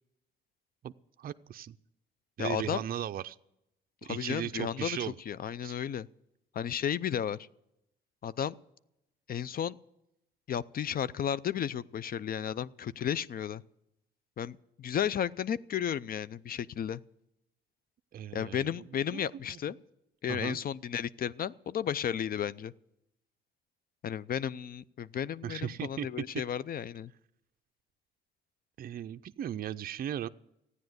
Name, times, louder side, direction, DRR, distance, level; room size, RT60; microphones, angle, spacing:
voice 1, 1.2-1.8 2.4-3.4 4.0-5.1 5.6-5.7 18.1-18.8 19.1-19.6 20.3-20.6 25.4-26.1 28.8-30.3, right 10 dB, 50° right, 10 dB, 0.5 m, -37 dB
voice 2, 2.4-2.8 4.0-6.1 6.5-7.4 8.2-8.5 9.3-9.8 10.5-13.6 14.4-17.0 18.3-19.8 20.2-22.7 24.0-27.1, left 9 dB, 50° left, 19 dB, 0.5 m, -33 dB
14.5 x 9.7 x 8.0 m, 0.84 s
cardioid pair, 90°, 20 cm